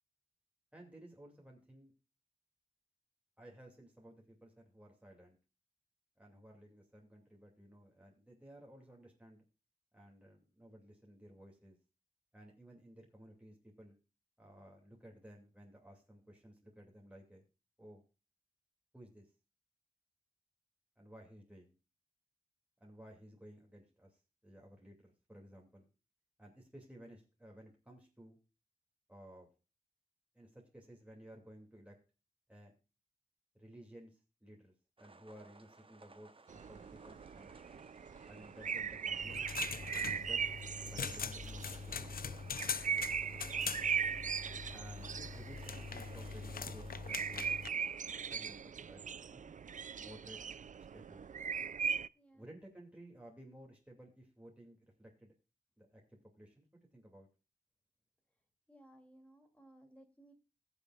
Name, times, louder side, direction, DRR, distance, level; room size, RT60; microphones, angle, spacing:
voice 1, 0.7-1.9 3.4-5.4 6.2-9.4 9.9-11.8 12.3-14.0 14.4-17.4 17.8-18.0 18.9-19.3 21.0-21.7 22.8-25.9 26.4-28.4 29.1-29.5 30.3-32.0 32.5-32.7 33.6-37.8 38.3-39.4 40.2-40.4 40.8-42.4 44.7-47.5 48.0-49.5 50.0-50.4 50.8-51.3 52.4-55.3 55.8-57.3, right 1 dB, 10° right, -1 dB, 2.6 m, -56 dB
sound 1, 35.0-48.2, right 3 dB, 35° right, 1.0 m, -61 dB
sound 2, 36.5-52.1, right 7 dB, 60° right, 0.4 m, -40 dB
sound 3, 39.2-47.7, left 6 dB, 80° left, 0.7 m, -43 dB
voice 2, 52.1-52.5 58.7-60.3, right 1 dB, 10° left, 4 dB, 2.9 m, -61 dB
20.5 x 7.1 x 2.4 m, 0.31 s
wide cardioid pair, 75°, 15 cm